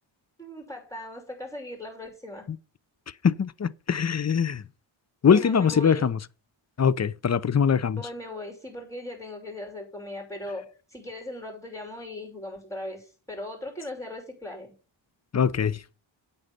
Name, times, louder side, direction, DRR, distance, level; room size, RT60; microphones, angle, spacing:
voice 1, 0.4-2.5 5.3-6.1 8.0-14.7, left 1 dB, 5° left, 6.1 m, -38 dB
voice 2, 3.2-4.6 5.2-6.2 6.8-8.0 15.3-16.0, left 7 dB, 35° left, 0.6 m, -22 dB
9.0 x 5.5 x 7.9 m
wide cardioid pair, 80°, 46 cm